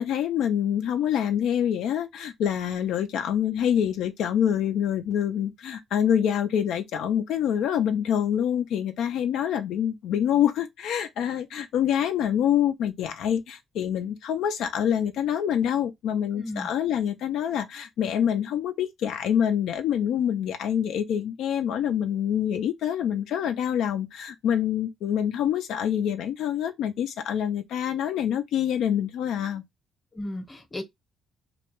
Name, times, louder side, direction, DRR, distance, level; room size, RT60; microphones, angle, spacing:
voice 1, 0.0-29.6, left 9 dB, 80° left, 0.3 m, -26 dB
voice 2, 16.3-16.7 30.1-30.8, left 1 dB, 20° left, 0.8 m, -35 dB
2.2 x 2.1 x 2.9 m
cardioid pair, 90°, 0 cm